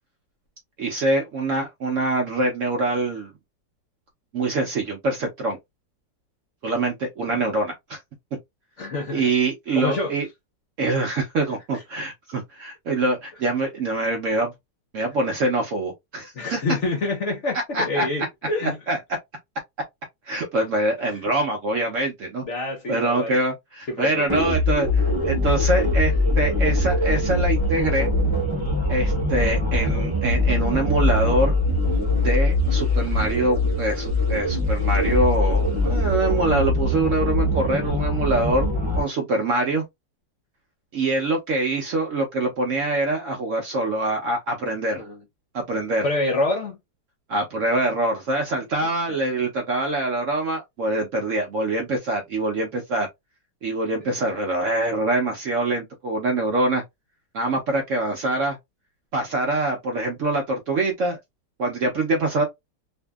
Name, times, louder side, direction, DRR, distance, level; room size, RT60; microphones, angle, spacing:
voice 1, 0.8-3.3 4.3-5.6 6.6-8.0 9.1-10.3 10.8-14.5 14.9-16.6 17.7-18.1 18.9-19.0 20.2-22.4 22.9-28.1 28.9-31.6 32.2-38.7 39.0-39.8 40.9-45.0 45.5-46.1 47.3-53.1 53.6-56.8 57.3-58.6 59.1-61.2 61.6-62.4, right 2 dB, 65° right, 0.8 m, -24 dB
voice 2, 8.8-9.3 9.7-10.1 11.7-11.8 16.4-18.8 21.0-21.1 22.4-23.4 23.9-24.5 45.0-45.2 46.0-46.8, left 2 dB, 60° left, 0.8 m, -27 dB
sound 1, 24.3-39.0, left 1 dB, 25° right, 0.7 m, -22 dB
2.6 x 2.6 x 2.2 m
omnidirectional pair, 1.9 m